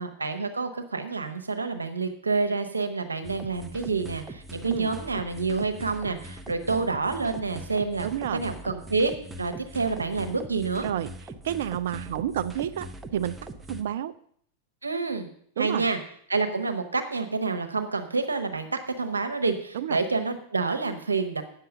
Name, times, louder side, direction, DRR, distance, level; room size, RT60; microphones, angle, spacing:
voice 1, 0.0-9.1 9.4-10.9 14.8-15.3 15.6-16.0 16.3-18.7 19.0-21.4, right 4 dB, 80° right, 8 dB, 1.1 m, -28 dB
sound 1, 3.2-13.8, right 1 dB, 10° right, 0.8 m, -42 dB
voice 2, 8.0-8.4 10.8-11.1 11.4-13.4 13.7-14.1 15.6-15.9 19.7-20.0, right 10 dB, 60° right, 12 dB, 0.4 m, -30 dB
8.8 x 6.8 x 6.5 m, 0.63 s
figure-of-eight pair, 90°, 0 cm